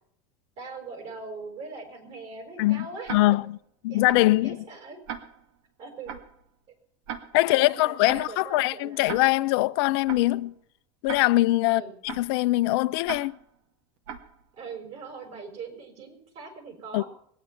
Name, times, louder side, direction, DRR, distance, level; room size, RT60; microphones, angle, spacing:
voice 1, 0.6-3.1 3.9-5.0 5.8-6.1 7.4-9.0 11.6-11.9 14.5-17.1, right 4 dB, 50° right, 6.2 m, -41 dB
voice 2, 2.6-3.6 3.8-4.6 7.3-10.5 11.0-13.4 16.9-17.0, left 18 dB, 70° left, 0.6 m, -23 dB
Tick-tock, 3.1-3.6 4.1-4.4 5.1-5.6 6.1-6.4 7.1-7.6 8.1-8.4 9.1-9.6 10.1-10.4 11.1-11.6 12.1-12.4 13.1-13.6 14.1-14.4, right 8 dB, 70° right, 1.9 m, -39 dB
21.5 x 9.5 x 5.8 m
supercardioid pair, 110°, 14 cm